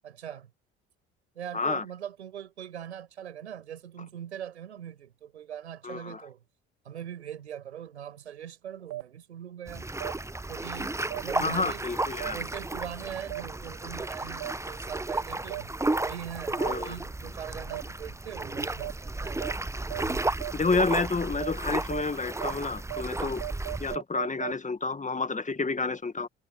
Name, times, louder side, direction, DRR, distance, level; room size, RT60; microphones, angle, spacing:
voice 1, 0.0-0.5 1.3-6.4 6.8-9.9 10.5-11.8 12.3-15.7 16.0-19.5 19.9-20.4, right 9 dB, 90° right, 6.7 m, -41 dB
voice 2, 1.5-1.8 5.8-6.2 11.4-12.4 16.6-17.0 20.5-23.4 23.8-26.3, left 4 dB, 20° left, 2.0 m, -29 dB
sound 1, 8.9-9.0 10.0-10.1 11.1-11.2 12.2-12.3 13.3-13.4 14.4-14.5 15.5-15.6 16.6-16.7 17.7-17.8 18.8-18.9 19.4-19.5 19.9-20.0 20.4-20.5 20.9-21.0 21.4-21.5 21.9-22.0 22.4-22.5 22.9-23.0 23.4-24.5, right 18 dB, 65° right, 3.5 m, -35 dB
sound 2, 9.7-24.0, right 2 dB, 10° right, 1.0 m, -33 dB
hypercardioid pair, 55°, 33 cm